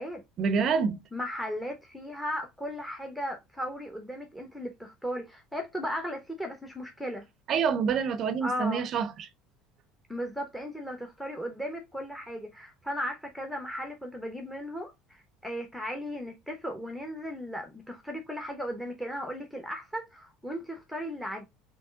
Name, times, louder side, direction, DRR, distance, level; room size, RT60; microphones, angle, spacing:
voice 1, 0.4-1.0 7.5-9.3, right 6 dB, 45° right, 0.5 m, -27 dB
voice 2, 1.1-7.3 8.4-8.9 10.1-21.5, equal, ahead, 0.8 m, -36 dB
3.5 x 3.1 x 3.5 m
supercardioid pair, 115°, 0 cm